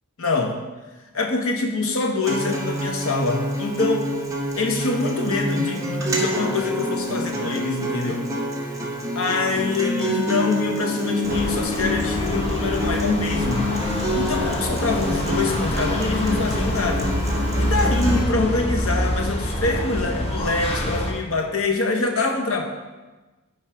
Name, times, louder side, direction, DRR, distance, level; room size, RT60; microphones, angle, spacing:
voice 1, 0.2-0.5 1.1-4.1 4.6-8.2 9.1-17.1 17.6-22.6, left 3 dB, 75° left, 3 dB, 0.9 m, -25 dB
Acoustic guitar, 2.2-18.2, equal, 15° right, 0.8 m, -27 dB
sound 1, 11.2-21.1, left 1 dB, 30° left, 0.8 m, -26 dB
5.9 x 4.6 x 4.7 m, 1.2 s
head